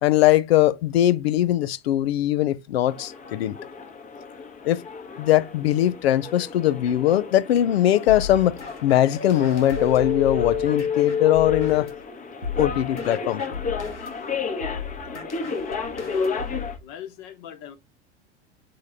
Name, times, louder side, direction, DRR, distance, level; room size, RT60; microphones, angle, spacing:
voice 1, 0.0-3.6 4.6-4.8 5.2-11.9 12.6-13.6, left 13 dB, 60° left, 0.7 m, -21 dB
sound 1, 2.9-16.8, left 5 dB, 25° left, 1.2 m, -31 dB
sound 2, 8.1-12.0 12.4-16.8, left 6 dB, 85° left, 1.4 m, -36 dB
voice 2, 15.0-15.6 15.9-16.3 16.8-17.8, left 10 dB, 45° left, 1.3 m, -42 dB
6.8 x 3.8 x 3.6 m
figure-of-eight pair, 85°, 34 cm